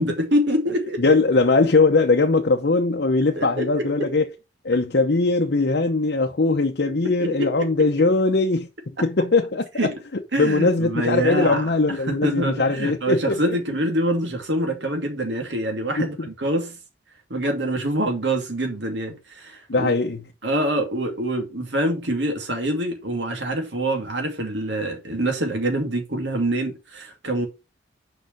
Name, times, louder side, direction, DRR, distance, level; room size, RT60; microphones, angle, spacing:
voice 1, 0.0-1.0 3.4-4.1 7.0-7.7 9.8-9.9 10.3-16.8 17.3-19.9 20.4-27.5, right 1 dB, 70° right, 2.5 m, -25 dB
voice 2, 1.0-4.3 4.6-8.7 9.0-9.9 10.4-13.6 16.0-16.3 19.7-20.2, left 3 dB, 60° left, 0.8 m, -20 dB
6.4 x 5.0 x 5.3 m
head